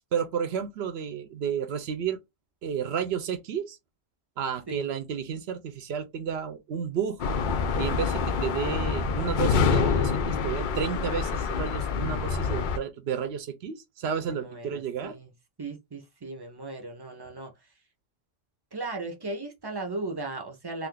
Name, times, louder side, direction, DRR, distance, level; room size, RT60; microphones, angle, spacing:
voice 1, 0.1-2.2 2.6-3.8 4.4-7.2 7.8-15.2, right 7 dB, 60° right, 0.8 m, -31 dB
sound 1, 7.2-12.8, left 5 dB, 70° left, 0.4 m, -26 dB
voice 2, 14.2-15.3 15.6-17.5 18.7-20.9, right 2 dB, 30° right, 0.5 m, -37 dB
2.5 x 2.4 x 3.6 m
omnidirectional pair, 1.3 m